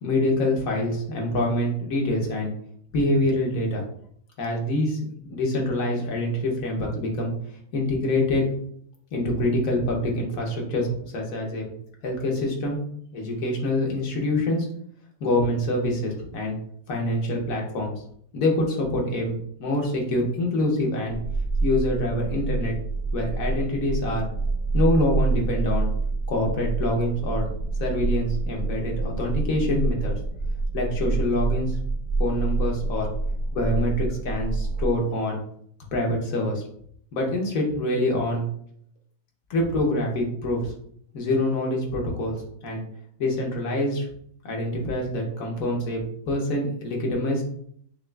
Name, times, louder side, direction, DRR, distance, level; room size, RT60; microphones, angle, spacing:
voice 1, 0.0-2.5 2.9-3.8 4.4-7.3 7.7-8.4 9.1-11.7 12.0-12.8 13.1-14.7 15.2-16.6 16.9-17.9 18.3-19.3 19.6-21.2 21.6-22.7 23.1-24.2 24.7-25.9 26.3-27.5 27.8-30.1 30.7-31.8 32.2-33.1 33.5-35.4 35.9-36.6 37.1-38.4 39.5-40.7 41.1-42.4 42.6-42.8 43.2-44.1 44.4-47.4, left 1 dB, 80° left, 0 dB, 1.4 m, -25 dB
sound 1, 21.1-34.9, right 3 dB, 50° right, 0.6 m, -27 dB
6.4 x 2.4 x 2.3 m, 0.65 s
omnidirectional pair, 1.4 m